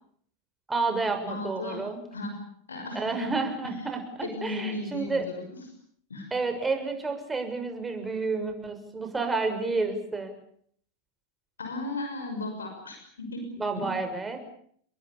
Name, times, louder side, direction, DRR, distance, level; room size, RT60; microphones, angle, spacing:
voice 1, 0.7-2.0 2.9-5.3 6.3-10.3 13.6-14.4, right 3 dB, 15° right, 5 dB, 6.7 m, -30 dB
voice 2, 1.3-1.8 2.1-2.4 2.7-3.3 3.6-3.9 4.2-5.6 6.1-6.3 11.6-13.9, left 2 dB, 85° left, 5 dB, 6.1 m, -36 dB
30.0 x 22.0 x 6.9 m, 0.63 s
hypercardioid pair, 90°, 0 cm